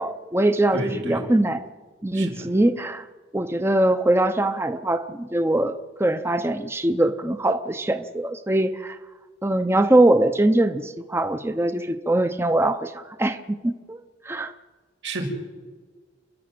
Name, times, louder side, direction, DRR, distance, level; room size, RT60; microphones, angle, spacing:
voice 1, 0.0-1.6 2.0-3.0 3.3-9.0 9.4-14.0 14.2-14.5, right 1 dB, 15° right, 8 dB, 0.7 m, -22 dB
voice 2, 0.7-1.2 2.1-2.4 15.0-15.2, right 2 dB, 90° right, 0 dB, 5.9 m, -30 dB
30.0 x 11.0 x 7.8 m, 1.4 s
head